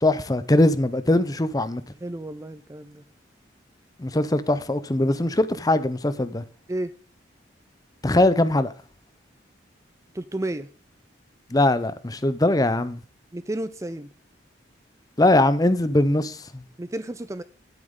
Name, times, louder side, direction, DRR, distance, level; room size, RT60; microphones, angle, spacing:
voice 1, 0.0-1.8 4.0-6.4 8.0-8.7 11.5-13.0 15.2-16.6, left 1 dB, 20° left, 0.7 m, -21 dB
voice 2, 2.0-3.0 6.7-6.9 10.1-10.7 13.3-14.1 16.8-17.4, right 1 dB, 15° right, 0.4 m, -32 dB
11.0 x 9.2 x 3.7 m
head